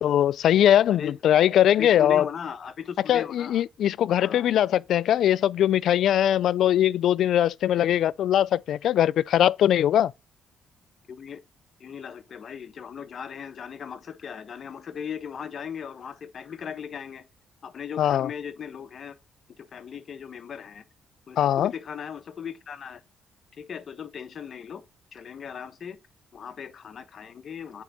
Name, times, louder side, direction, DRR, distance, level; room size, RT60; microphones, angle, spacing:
voice 1, 0.0-2.3 3.1-10.1 18.0-18.3 21.4-21.7, left 11 dB, 70° left, 0.3 m, -21 dB
voice 2, 1.8-3.6 4.1-4.5 7.7-8.0 11.1-11.4 11.8-17.3 17.6-19.1 19.6-20.8 21.3-23.0 23.6-24.8 25.1-26.0 26.3-27.8, left 7 dB, 55° left, 1.0 m, -38 dB
8.5 x 4.6 x 4.0 m
cardioid pair, 90°, 0 cm